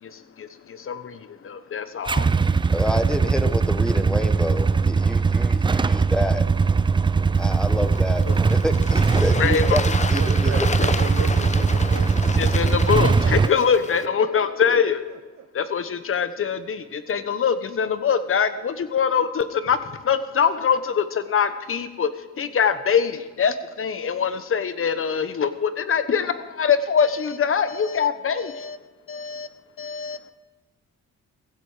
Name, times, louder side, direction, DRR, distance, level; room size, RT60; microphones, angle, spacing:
voice 1, 0.0-2.4 8.3-8.4 9.4-9.8 12.4-15.0 15.5-28.8 29.1-29.5 29.8-30.2, left 7 dB, 45° left, 12 dB, 1.2 m, -23 dB
Motorcycle / Engine starting / Idling, 2.1-13.5, right 4 dB, 15° right, 0.4 m, -20 dB
voice 2, 2.7-6.4 7.4-9.8 10.1-10.7, equal, ahead, 10 dB, 1.1 m, -28 dB
Bird / Water, 7.3-14.1, left 4 dB, 25° left, 0.8 m, -32 dB
voice 3, 10.1-12.1 12.7-13.8 14.3-14.4 15.4-15.5, right 9 dB, 65° right, 8 dB, 0.8 m, -35 dB
15.5 x 15.5 x 5.0 m, 1.2 s
cardioid pair, 90°, 30 cm